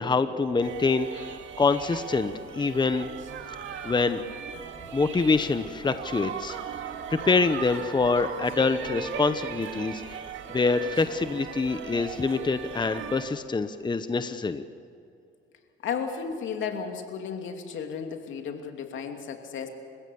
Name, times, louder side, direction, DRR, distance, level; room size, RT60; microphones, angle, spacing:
voice 1, 0.0-3.1 3.8-4.2 4.9-6.6 7.1-10.2 10.5-14.6, left 4 dB, 20° left, 10 dB, 0.9 m, -25 dB
sound 1, 0.6-13.3, right 7 dB, 75° right, 2.2 m, -38 dB
voice 2, 15.8-19.7, left 6 dB, 75° left, 4 dB, 2.7 m, -34 dB
29.5 x 16.0 x 7.1 m, 2.6 s
cardioid pair, 90°, 20 cm